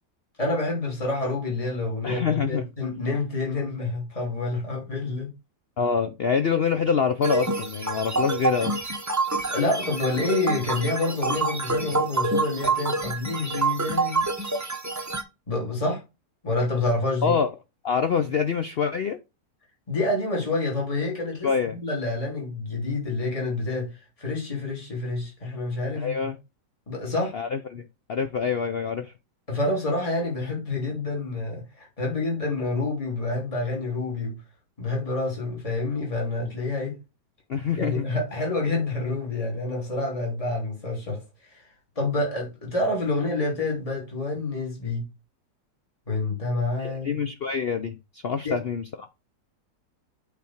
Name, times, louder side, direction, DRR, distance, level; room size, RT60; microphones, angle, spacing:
voice 1, 0.4-5.3 9.5-14.2 15.5-16.0 16.4-17.3 19.9-26.3 26.9-27.3 29.5-34.4 34.8-37.0 37.7-41.7 41.9-45.0 46.1-47.1 48.4-48.6, left 2 dB, 20° left, 3.2 m, -28 dB
voice 2, 2.0-2.6 5.8-8.8 17.2-17.5 17.8-19.2 21.4-21.8 26.0-26.4 27.3-29.1 37.5-38.1 46.8-49.1, left 6 dB, 75° left, 0.5 m, -26 dB
sound 1, 7.2-15.2, right 3 dB, 15° right, 0.6 m, -27 dB
8.4 x 4.2 x 4.4 m
omnidirectional pair, 1.8 m